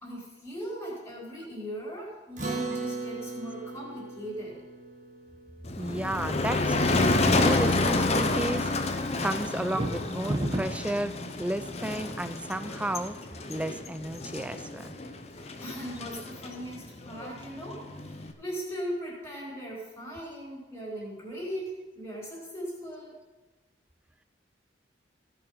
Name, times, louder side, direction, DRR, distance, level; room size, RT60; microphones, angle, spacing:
voice 1, 0.0-4.6 15.3-23.2, equal, 15° left, -6 dB, 3.8 m, -39 dB
Acoustic guitar, 2.4-7.1, right 3 dB, 40° right, 1.6 m, -38 dB
Motor vehicle (road), 5.6-18.3, left 2 dB, 35° left, 0.8 m, -29 dB
voice 2, 5.8-8.7 9.2-13.2 13.5-15.0, right 1 dB, 5° right, 11 dB, 0.4 m, -32 dB
sound 1, 9.6-10.9, right 1 dB, 25° right, 0.9 m, -30 dB
16.5 x 5.8 x 5.5 m, 1.2 s
head